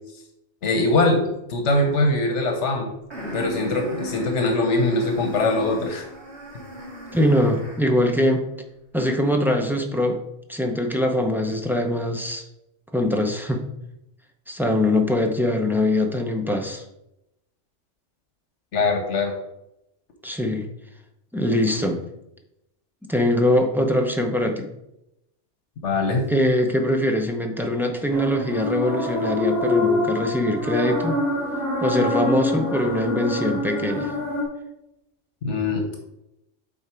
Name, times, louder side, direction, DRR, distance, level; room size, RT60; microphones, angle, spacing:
voice 1, 0.6-1.2 1.5-2.9 3.3-6.0 18.7-19.3 25.8-26.3 35.4-36.1, left 2 dB, 80° left, 4 dB, 1.4 m, -22 dB
sound 1, 3.1-8.0, equal, 65° right, 2.3 m, -36 dB
voice 2, 7.1-8.5 8.9-10.2 10.5-12.4 12.9-13.6 14.5-16.8 20.2-20.7 21.3-22.0 23.1-24.7 26.3-31.2 31.8-34.1, left 1 dB, ahead, 3 dB, 0.6 m, -22 dB
sound 2, 28.1-34.4, left 2 dB, 15° left, 2.0 m, -25 dB
8.6 x 4.0 x 4.4 m, 0.85 s
omnidirectional pair, 1.2 m